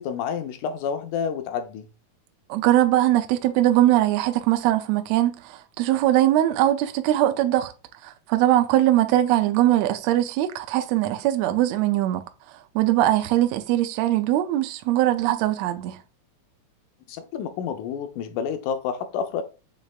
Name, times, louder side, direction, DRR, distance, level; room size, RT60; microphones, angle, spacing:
voice 1, 0.0-1.9 17.1-19.4, left 7 dB, 80° left, 2.1 m, -29 dB
voice 2, 2.5-7.7 8.0-12.2 12.7-16.0, right 14 dB, 80° right, 1.6 m, -21 dB
6.4 x 3.3 x 2.4 m
omnidirectional pair, 3.5 m